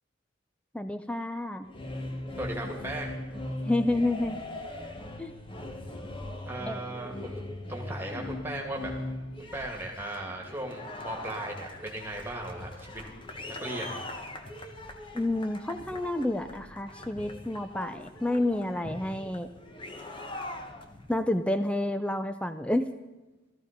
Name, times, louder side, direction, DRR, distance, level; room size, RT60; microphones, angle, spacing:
voice 1, 0.7-1.7 3.6-4.4 5.2-5.3 6.7-6.8 15.1-19.5 21.1-22.9, left 1 dB, 5° left, 9 dB, 0.5 m, -29 dB
sound 1, 1.6-21.2, left 1 dB, 25° left, 1.1 m, -40 dB
voice 2, 2.4-3.2 6.5-7.4 7.7-8.9 9.4-13.0 13.6-14.0, right 1 dB, 10° right, 0 dB, 2.3 m, -37 dB
17.5 x 14.0 x 5.2 m, 1.1 s
head